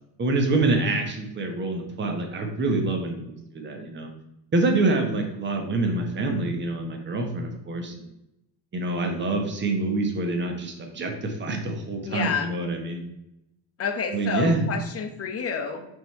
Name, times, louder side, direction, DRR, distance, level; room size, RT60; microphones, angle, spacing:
voice 1, 0.2-4.1 4.5-8.1 8.7-13.0 14.1-14.6, right 2 dB, 25° right, 3 dB, 1.1 m, -26 dB
voice 2, 12.1-12.5 13.8-15.9, left 6 dB, 35° left, 5 dB, 0.9 m, -29 dB
5.7 x 3.8 x 4.5 m, 0.85 s
cardioid pair, 135°, 41 cm